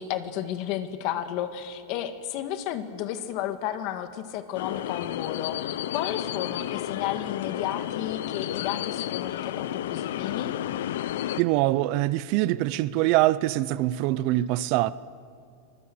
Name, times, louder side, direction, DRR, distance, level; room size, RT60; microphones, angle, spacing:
voice 1, 0.0-5.6 5.9-10.5, left 11 dB, 50° left, 1.8 m, -32 dB
sound 1, 4.5-11.4, left 12 dB, 80° left, 0.7 m, -32 dB
voice 2, 11.4-14.9, right 16 dB, 50° right, 0.6 m, -24 dB
25.0 x 21.0 x 7.8 m
supercardioid pair, 155°, 0 cm